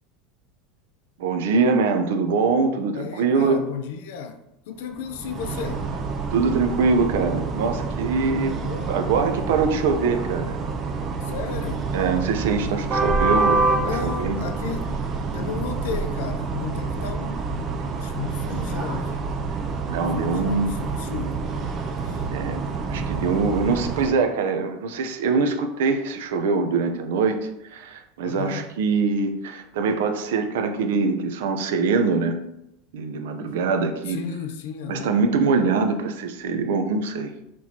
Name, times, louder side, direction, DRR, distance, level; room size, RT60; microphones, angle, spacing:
voice 1, 1.2-3.6 6.3-8.5 8.9-10.6 11.9-14.4 19.9-20.8 22.3-32.3 32.9-34.2 34.9-37.3, right 4 dB, 90° right, 6 dB, 0.6 m, -23 dB
voice 2, 2.9-4.4 4.7-5.9 8.3-9.3 11.2-11.9 13.8-15.0 15.3-17.5 18.0-19.2 20.1-21.4 22.1-22.4 28.2-28.7 34.1-35.2, left 7 dB, 75° left, 7 dB, 0.5 m, -34 dB
sound 1, 5.0-24.1, right 4 dB, 25° right, 0.4 m, -27 dB
5.9 x 3.1 x 2.8 m, 0.84 s
supercardioid pair, 170°, 0 cm